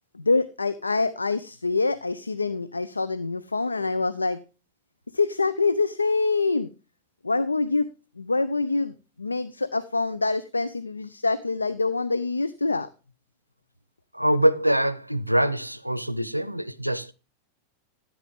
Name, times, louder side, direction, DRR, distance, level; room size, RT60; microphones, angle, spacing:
voice 1, 0.1-4.4 5.1-6.7 7.2-7.9 8.2-12.9, left 3 dB, 80° left, 0.5 m, -25 dB
voice 2, 14.1-17.1, right 1 dB, 90° right, 0.5 m, -24 dB
13.5 x 8.5 x 3.6 m
figure-of-eight pair, 90°, 0 cm